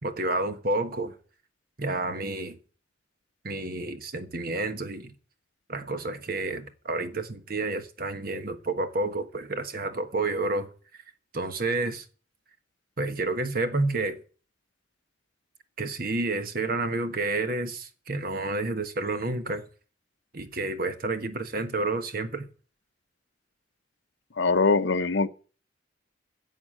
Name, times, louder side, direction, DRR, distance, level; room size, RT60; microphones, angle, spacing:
voice 1, 0.0-1.1 1.8-2.6 3.4-5.1 5.7-10.7 11.3-12.1 13.0-14.2 15.8-19.6 20.3-22.5, right 2 dB, 50° right, 1.4 m, -30 dB
voice 2, 24.4-25.3, left 4 dB, 75° left, 0.7 m, -22 dB
11.0 x 7.4 x 8.8 m
head